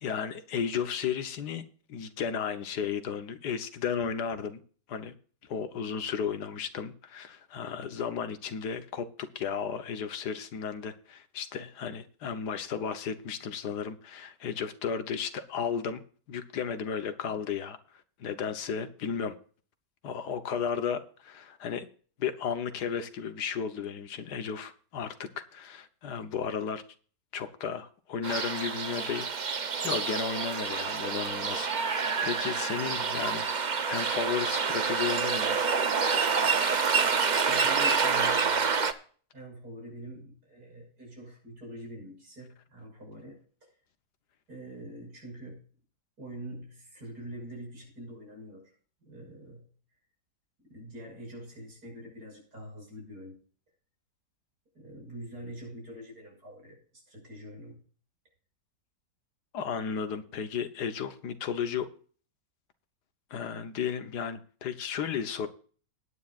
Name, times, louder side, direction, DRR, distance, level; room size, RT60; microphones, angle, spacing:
voice 1, 0.0-1.6 1.9-4.6 4.9-5.1 5.4-17.8 18.2-19.4 20.0-21.9 22.2-26.8 27.3-29.3 29.8-33.5 33.9-35.6 59.5-61.9 63.3-65.5, left 7 dB, 70° left, 1.6 m, -34 dB
sound 1, 28.2-38.9, right 5 dB, 45° right, 0.6 m, -28 dB
voice 2, 37.5-38.7 39.3-43.7 44.5-45.6 46.2-48.7 49.0-49.7 50.6-53.4 54.8-57.8, equal, 65° right, 6.8 m, -45 dB
19.0 x 9.6 x 2.5 m
omnidirectional pair, 1.8 m